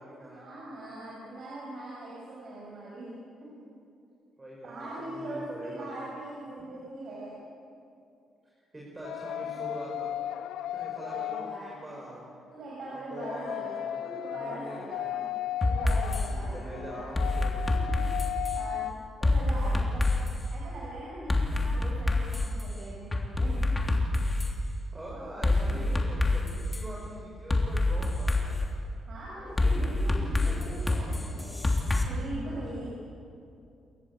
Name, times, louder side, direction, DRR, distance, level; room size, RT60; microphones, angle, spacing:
voice 1, 0.3-3.6 4.6-7.5 9.4-9.8 11.0-11.9 12.5-15.2 15.6-17.2 17.7-18.0 18.5-18.9 19.2-20.0 20.5-23.6 25.7-25.8 29.1-31.6 32.0-32.9, right 1 dB, 60° right, -5 dB, 6.7 m, -41 dB
voice 2, 4.4-5.9 6.6-6.7 8.6-10.2 10.7-12.3 13.1-15.2 16.3-17.6 18.1-18.3 24.9-28.6 29.4-30.9 32.4-32.9, right 1 dB, 20° right, -4 dB, 6.0 m, -44 dB
sound 1, 9.0-12.1 13.1-18.9, left 12 dB, 85° left, 0.5 m, -36 dB
sound 2, 15.6-16.3 17.1-18.6 19.2-20.4 21.3-22.6 23.1-24.5 25.4-26.8 27.5-28.7 29.6-32.0, left 2 dB, 20° left, 3.1 m, -26 dB
28.5 x 14.5 x 8.2 m, 2.5 s
cardioid pair, 90°, 0 cm